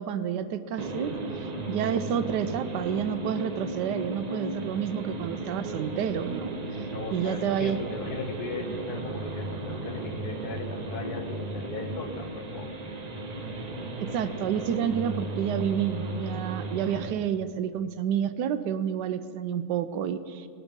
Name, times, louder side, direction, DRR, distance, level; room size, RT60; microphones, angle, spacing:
voice 1, 0.0-6.9 7.1-7.8 14.0-20.5, right 8 dB, 80° right, 12 dB, 1.2 m, -29 dB
sound 1, 0.8-17.1, right 2 dB, 40° right, 0.6 m, -35 dB
voice 2, 6.9-12.8, left 4 dB, 65° left, 5 dB, 1.4 m, -38 dB
18.5 x 6.2 x 5.2 m, 2.2 s
omnidirectional pair, 1.8 m